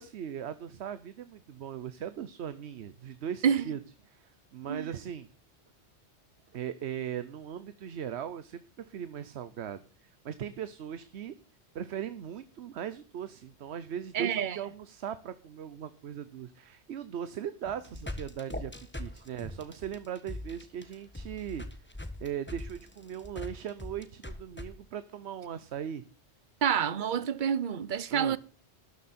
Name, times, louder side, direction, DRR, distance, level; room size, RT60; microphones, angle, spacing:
voice 1, 0.0-3.8 4.1-5.3 6.5-11.3 11.7-21.6 22.2-26.0 28.1-28.4, right 9 dB, 75° right, 1.0 m, -39 dB
voice 2, 14.1-14.6 26.6-28.4, right 8 dB, 50° right, 0.9 m, -28 dB
sound 1, 17.6-24.7, left 1 dB, 10° left, 1.3 m, -41 dB
13.0 x 10.0 x 4.3 m
omnidirectional pair, 1.1 m